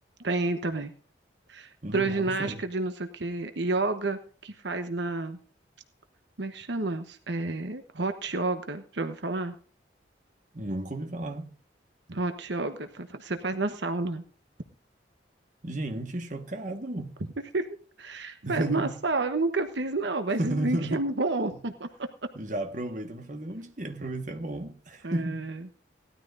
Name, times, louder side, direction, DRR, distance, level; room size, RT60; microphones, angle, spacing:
voice 1, 0.2-0.9 1.5-5.4 6.4-9.5 12.1-14.2 17.5-17.7 18.0-21.9 25.0-25.7, right 2 dB, 70° right, 1.1 m, -30 dB
voice 2, 1.8-2.6 10.5-11.5 15.6-17.2 18.4-19.0 20.4-21.0 21.5-21.6 22.3-25.5, right 1 dB, 45° right, 1.6 m, -33 dB
18.0 x 13.0 x 2.6 m
head